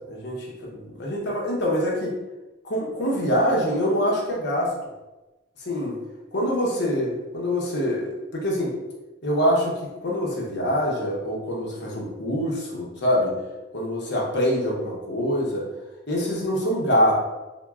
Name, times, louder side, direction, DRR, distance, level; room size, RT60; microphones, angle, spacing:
voice 1, 0.1-2.2 2.6-4.7 5.7-6.0 6.3-8.7 9.2-9.7 10.0-13.4 13.7-15.7 16.1-17.1, equal, 55° left, -3 dB, 0.8 m, -24 dB
3.9 x 2.2 x 2.3 m, 1.1 s
head